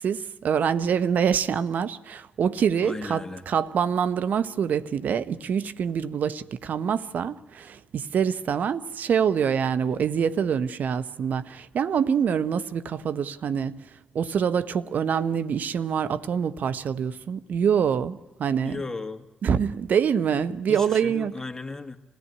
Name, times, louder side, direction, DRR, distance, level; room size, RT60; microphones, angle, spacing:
voice 1, 0.0-13.8 14.1-18.8 19.4-21.3, right 7 dB, 65° right, 0.9 m, -25 dB
voice 2, 2.8-3.4 18.6-19.3 20.7-22.0, left 3 dB, 15° left, 2.4 m, -35 dB
26.5 x 17.0 x 9.9 m
hypercardioid pair, 45°, 3 cm